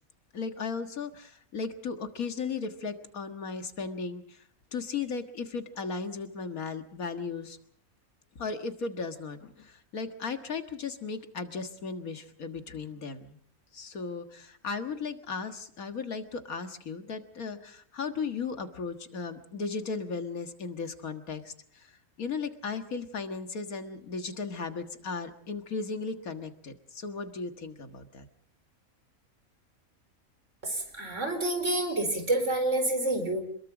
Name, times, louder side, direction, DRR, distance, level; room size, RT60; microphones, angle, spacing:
voice 1, 0.3-4.4 4.7-7.6 8.4-13.4 13.7-21.9 22.2-28.3, left 5 dB, 80° left, 7 dB, 2.1 m, -36 dB
voice 2, 30.6-33.4, right 2 dB, 55° right, 6 dB, 4.9 m, -28 dB
27.0 x 21.5 x 5.0 m, 0.65 s
omnidirectional pair, 1.5 m